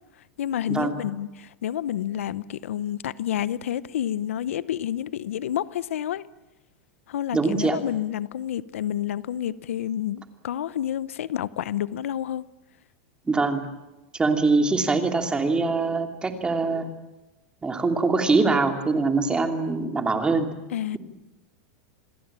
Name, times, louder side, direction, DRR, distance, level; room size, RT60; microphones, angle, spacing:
voice 1, 0.4-6.3 7.1-12.4 20.7-21.0, left 11 dB, 90° left, 0.9 m, -29 dB
voice 2, 7.3-7.8 13.3-13.7 14.1-16.9 17.6-20.5, right 3 dB, 15° right, 3.0 m, -23 dB
27.5 x 21.5 x 8.9 m
supercardioid pair, 135°, 7 cm